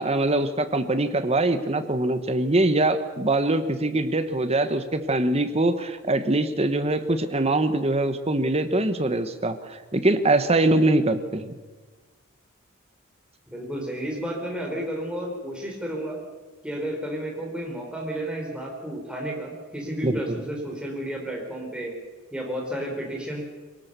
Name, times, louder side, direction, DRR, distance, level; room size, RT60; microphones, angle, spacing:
voice 1, 0.0-11.5 20.0-20.4, right 2 dB, 30° right, 9 dB, 1.3 m, -23 dB
voice 2, 13.5-16.2 16.6-21.9 22.3-23.4, right 1 dB, 5° right, 0 dB, 4.6 m, -32 dB
22.5 x 18.5 x 6.9 m, 1.3 s
head